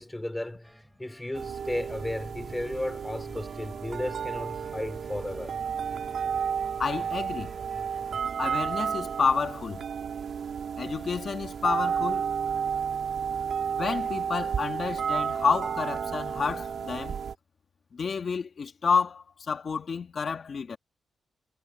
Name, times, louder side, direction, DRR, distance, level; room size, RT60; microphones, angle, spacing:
voice 1, 0.0-5.6, left 1 dB, 10° left, 4.1 m, -34 dB
sound 1, 0.6-8.2, right 1 dB, 5° right, 6.4 m, -53 dB
sound 2, 1.3-17.3, right 7 dB, 70° right, 3.0 m, -32 dB
voice 2, 6.8-7.5 8.4-9.8 10.8-12.3 13.8-17.2 17.9-20.8, left 5 dB, 55° left, 1.9 m, -29 dB
cardioid pair, 95°, 0 cm